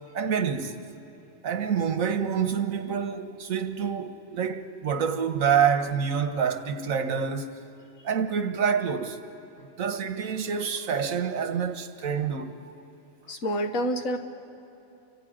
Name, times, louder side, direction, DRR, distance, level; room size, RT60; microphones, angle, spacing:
voice 1, 0.1-0.8 1.4-7.5 8.0-9.2 9.6-12.7, right 7 dB, 90° right, 1.6 m, -27 dB
voice 2, 13.3-14.2, equal, 80° left, 1.8 m, -27 dB
30.0 x 24.5 x 5.1 m
omnidirectional pair, 1.4 m